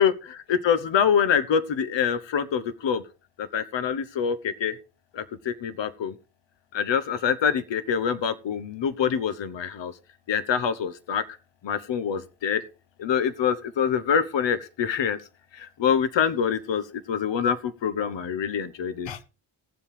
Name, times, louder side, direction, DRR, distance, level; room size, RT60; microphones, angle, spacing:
voice 1, 0.0-3.0 3.4-4.8 5.1-6.1 6.7-9.9 10.3-11.2 11.6-12.6 13.0-15.2 15.5-19.2, left 7 dB, 65° left, 14 dB, 1.1 m, -25 dB
18.0 x 7.5 x 3.4 m, 0.32 s
cardioid pair, 120°, 47 cm